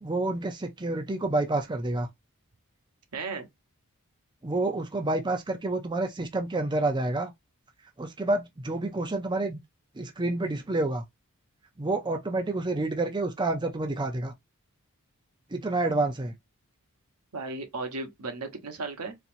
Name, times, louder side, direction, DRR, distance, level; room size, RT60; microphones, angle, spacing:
voice 1, 0.0-2.1 4.4-7.3 8.0-9.6 10.0-11.0 11.8-14.3 15.5-16.3, right 2 dB, 20° right, 0.5 m, -28 dB
voice 2, 3.1-3.5 17.3-19.2, right 3 dB, 85° right, 1.1 m, -35 dB
4.1 x 2.9 x 2.6 m
head